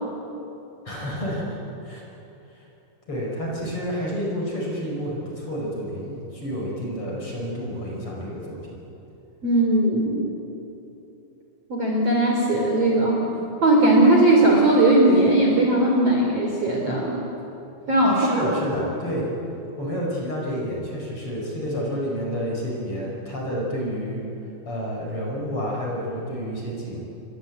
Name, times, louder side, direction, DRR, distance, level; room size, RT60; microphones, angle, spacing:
voice 1, 0.8-2.0 2.5-2.6 3.1-8.8 18.0-19.3 19.8-24.2 24.7-27.0, equal, 30° left, -2 dB, 5.8 m, -29 dB
voice 2, 9.4-10.3 11.7-13.3 13.6-17.2 17.9-18.5, right 1 dB, 35° right, -1 dB, 3.7 m, -18 dB
29.0 x 23.5 x 8.4 m, 3.0 s
omnidirectional pair, 5.8 m